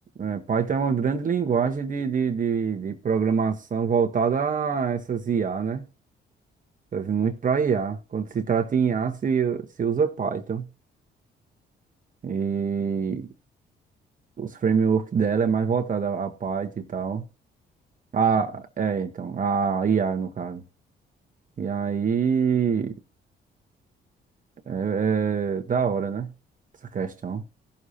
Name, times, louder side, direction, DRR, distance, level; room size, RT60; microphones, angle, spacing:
voice 1, 0.2-5.8 6.9-10.6 12.2-13.3 14.4-17.2 18.1-20.6 21.6-23.0 24.7-26.3 26.9-27.4, right 6 dB, 40° right, 1.1 m, -25 dB
17.5 x 6.4 x 2.8 m
cardioid pair, 90°, 20 cm